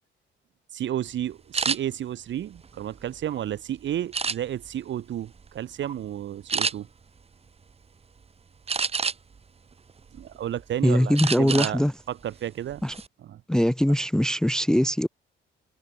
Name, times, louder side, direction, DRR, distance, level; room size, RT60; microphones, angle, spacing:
voice 1, 0.7-6.9 10.1-11.8 12.1-12.8 13.2-13.4, right 11 dB, 70° right, 1.9 m, -32 dB
sound 1, 1.5-1.8 2.4-3.4 4.1-4.7 5.2-5.5 5.8-6.0 6.5-6.7 8.7-9.4 9.9-10.6 11.2-11.8 12.1-12.3 12.7-13.1, right 5 dB, 30° right, 1.1 m, -28 dB
voice 2, 10.8-11.9 12.8-12.9 13.5-15.1, equal, 5° left, 0.4 m, -22 dB
cardioid pair, 90°, 20 cm